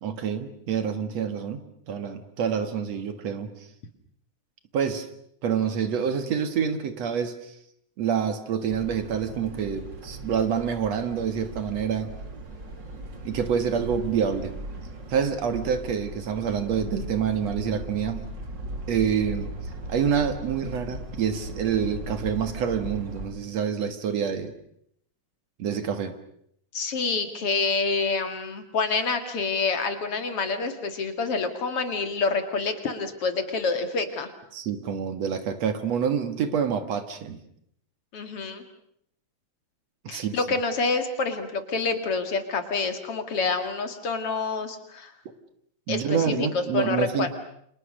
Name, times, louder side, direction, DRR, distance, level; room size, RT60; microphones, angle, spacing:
voice 1, 0.0-1.6 1.9-3.5 4.7-5.1 5.4-7.6 8.0-12.1 13.2-14.6 15.1-18.3 18.9-19.5 19.9-24.5 25.6-26.2 34.5-37.4 40.0-40.4 45.9-47.3, right 7 dB, 65° right, 9 dB, 2.8 m, -27 dB
sound 1, 8.7-23.3, right 1 dB, 40° right, 3.5 m, -38 dB
voice 2, 26.7-34.3 38.1-38.6 40.1-45.1 45.9-47.3, left 4 dB, 50° left, 8 dB, 2.9 m, -27 dB
29.5 x 27.0 x 6.5 m, 0.71 s
omnidirectional pair, 3.4 m